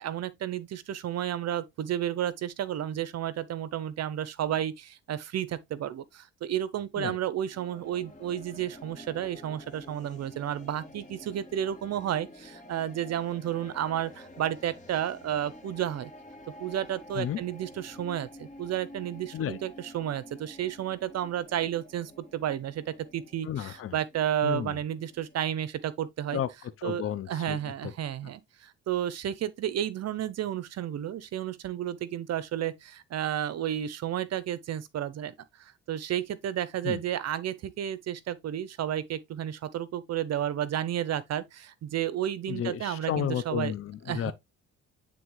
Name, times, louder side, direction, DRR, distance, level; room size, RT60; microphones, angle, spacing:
voice 1, 0.0-4.7 5.1-5.5 5.8-6.0 6.5-12.3 12.7-14.1 14.4-16.1 16.6-18.3 18.6-22.1 22.4-22.7 23.1-23.5 23.9-25.7 26.0-26.4 26.8-27.0 27.3-28.4 28.9-32.7 33.1-35.3 35.9-41.4 41.9-43.7 44.1-44.3, right 10 dB, 60° right, 0.6 m, -31 dB
sound 1, 7.5-25.7, left 1 dB, 25° left, 2.6 m, -50 dB
voice 2, 23.4-24.0 24.4-24.8 26.3-26.5 26.8-27.9 28.2-28.3 36.8-37.0 42.5-44.3, left 10 dB, 45° left, 0.6 m, -32 dB
9.3 x 3.6 x 3.1 m
cardioid pair, 90°, 30 cm